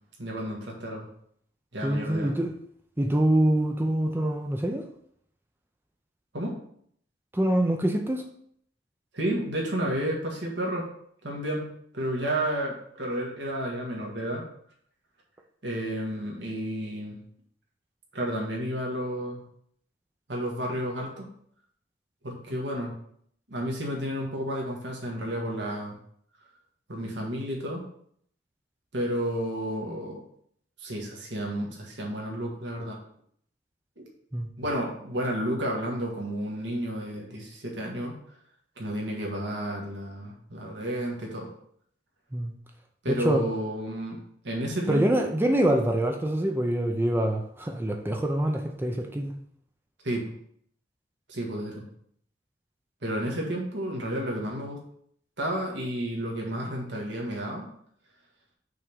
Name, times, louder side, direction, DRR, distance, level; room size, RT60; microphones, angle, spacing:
voice 1, 0.2-1.1 1.7-2.3 6.3-6.5 9.1-10.9 11.2-11.7 11.9-14.4 15.6-17.2 18.1-19.4 20.3-21.3 22.2-22.9 23.5-25.9 26.9-27.8 28.9-30.2 30.8-33.0 34.6-38.1 38.8-41.5 43.0-44.2 44.4-45.3 50.0-50.3 51.3-51.8 53.0-54.8 55.4-57.6, right 1 dB, 70° right, -1 dB, 1.7 m, -31 dB
voice 2, 1.8-2.5 3.0-4.8 7.3-8.2 22.5-22.6 34.3-34.5 42.3-42.5 43.1-43.4 44.9-49.3, right 1 dB, 10° right, 3 dB, 0.5 m, -25 dB
6.2 x 3.6 x 6.1 m, 0.66 s
head